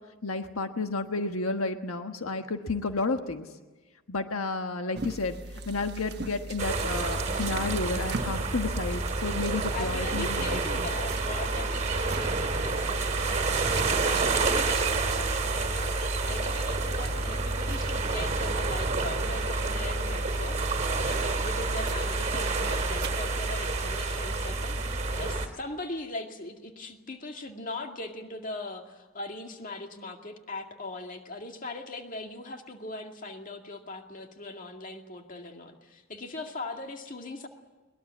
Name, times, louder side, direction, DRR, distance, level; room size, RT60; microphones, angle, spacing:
voice 1, 0.2-3.5 4.1-5.4 5.7-10.9, left 3 dB, 85° left, 6 dB, 1.4 m, -31 dB
sound 1, 4.9-23.6, right 2 dB, 50° right, 1.2 m, -41 dB
sound 2, 6.6-25.5, right 3 dB, 30° right, 2.5 m, -29 dB
voice 2, 9.7-37.5, left 2 dB, 40° left, 4 dB, 2.2 m, -40 dB
22.5 x 21.0 x 8.5 m, 1.2 s
head